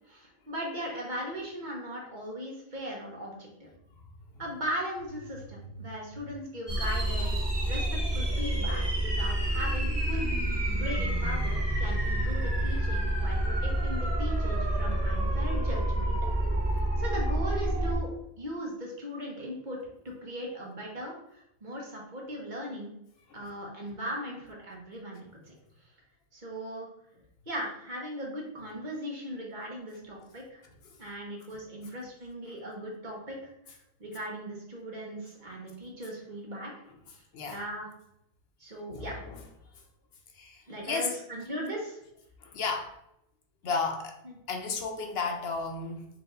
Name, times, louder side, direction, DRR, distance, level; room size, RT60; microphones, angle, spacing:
voice 1, 0.1-3.7 4.4-7.8 8.1-10.3 10.7-16.2 16.7-18.1 18.4-19.8 20.0-22.9 23.3-25.5 26.3-26.9 27.5-30.6 31.0-33.5 34.0-36.7 37.5-37.9 38.6-39.2 40.7-42.0 44.2-44.4, equal, 45° right, -2 dB, 1.2 m, -38 dB
sound 1, 6.7-18.0, right 1 dB, 25° right, 0.9 m, -28 dB
voice 2, 38.9-39.4 40.3-41.2 42.4-43.0 43.6-44.2 44.5-46.1, left 4 dB, 75° left, 3 dB, 1.0 m, -33 dB
4.8 x 2.8 x 3.9 m, 0.79 s
omnidirectional pair, 1.1 m